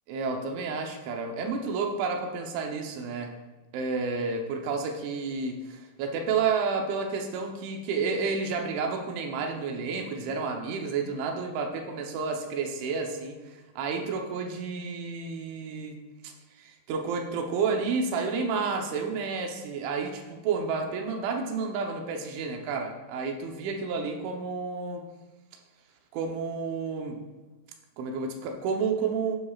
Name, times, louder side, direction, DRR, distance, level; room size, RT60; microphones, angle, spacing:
voice 1, 0.1-3.3 3.7-16.0 16.2-16.3 16.6-25.0 26.1-27.2 28.0-29.4, right 5 dB, 80° right, 2 dB, 3.3 m, -30 dB
12.5 x 10.0 x 2.4 m, 1.2 s
omnidirectional pair, 5.4 m